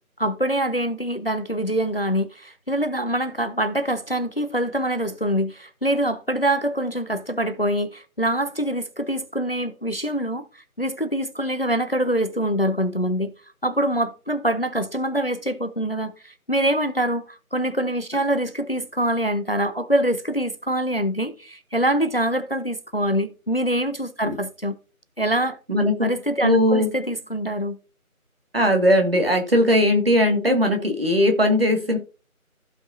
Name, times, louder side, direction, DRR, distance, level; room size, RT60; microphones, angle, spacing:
voice 1, 0.2-13.3 13.6-24.7 25.2-25.6 26.0-27.8, right 1 dB, 40° left, 0.7 m, -24 dB
voice 2, 25.7-26.1 26.4-26.9 28.5-32.0, left 1 dB, 40° right, 1.8 m, -19 dB
15.0 x 5.2 x 2.6 m
figure-of-eight pair, 170°, 43 cm